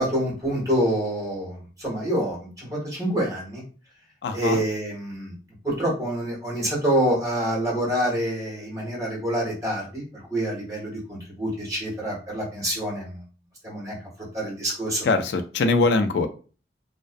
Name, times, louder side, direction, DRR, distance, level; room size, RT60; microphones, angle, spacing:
voice 1, 0.0-3.6 4.3-5.3 5.6-13.2 13.6-13.9 14.3-15.1, right 1 dB, 20° right, -4 dB, 1.1 m, -27 dB
voice 2, 4.2-4.6 15.0-16.3, left 3 dB, 75° left, 8 dB, 0.3 m, -22 dB
2.5 x 2.1 x 2.4 m, 0.36 s
head